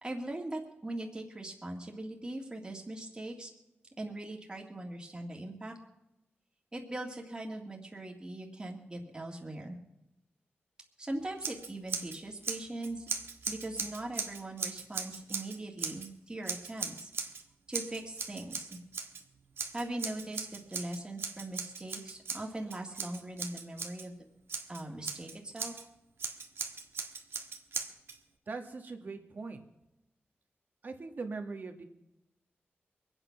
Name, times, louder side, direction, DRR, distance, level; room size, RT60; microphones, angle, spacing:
voice 1, 0.0-3.5 4.0-5.8 6.7-9.8 11.0-13.1 13.5-17.1 17.7-18.8 19.7-24.1 24.7-25.7, right 1 dB, 20° right, 1 dB, 2.1 m, -40 dB
Scissors, 11.4-12.2 12.4-16.1 16.5-17.4 17.7-19.2 19.6-24.1 24.5-25.8 26.2-28.2, right 5 dB, 75° right, 1.5 m, -38 dB
voice 2, 28.5-29.6 30.8-31.8, right 4 dB, 50° right, 5 dB, 1.8 m, -40 dB
24.0 x 9.0 x 5.8 m, 0.90 s
wide cardioid pair, 150°, 4 cm